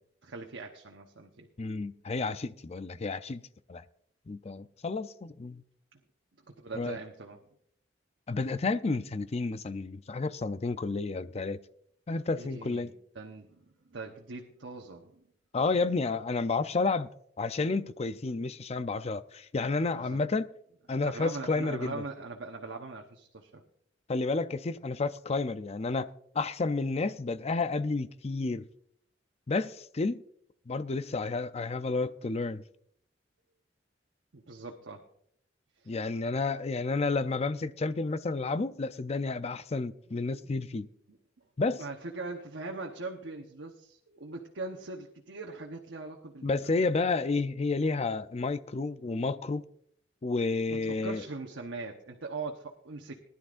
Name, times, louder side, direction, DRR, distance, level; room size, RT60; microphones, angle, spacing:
voice 1, 0.2-1.5 6.5-7.4 12.3-15.2 19.9-20.2 21.0-23.6 34.3-35.0 35.8-36.0 40.4-40.5 41.1-41.2 41.8-46.8 50.8-53.3, right 3 dB, 90° right, 1.1 m, -41 dB
voice 2, 1.6-3.4 3.7-3.8 4.3-5.6 6.7-7.0 8.3-11.6 12.1-12.9 15.5-17.1 17.4-20.5 20.9-22.0 24.1-26.1 26.3-28.7 29.5-30.2 30.7-32.6 35.9-40.9 41.6-41.8 46.4-49.6 50.2-51.2, left 3 dB, 35° left, 0.5 m, -31 dB
19.5 x 11.0 x 2.5 m
head